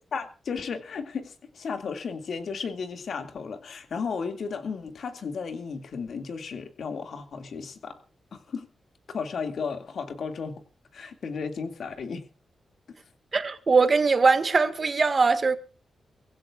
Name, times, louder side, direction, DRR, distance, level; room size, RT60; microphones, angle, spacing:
voice 1, 0.0-8.0 8.3-8.7 9.1-10.6 10.9-12.3, left 5 dB, 70° left, 2.3 m, -34 dB
voice 2, 13.3-15.6, right 4 dB, 40° right, 1.8 m, -21 dB
23.5 x 16.0 x 2.5 m
cardioid pair, 85°, 0 cm